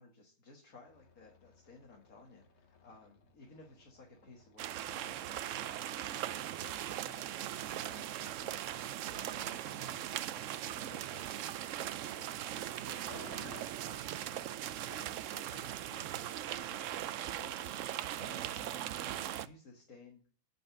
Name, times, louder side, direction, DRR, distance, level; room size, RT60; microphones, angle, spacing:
voice 1, 0.0-13.3 13.8-17.7 18.1-20.3, left 3 dB, 70° left, -1 dB, 2.1 m, -58 dB
sound 1, 0.9-13.6, left 4 dB, 50° left, 1.3 m, -60 dB
sound 2, 4.6-19.5, right 12 dB, 70° right, 0.8 m, -39 dB
sound 3, 9.7-10.2 12.8-14.6, right 12 dB, 90° right, 1.1 m, -53 dB
9.5 x 5.4 x 5.8 m, 0.41 s
omnidirectional pair, 1.6 m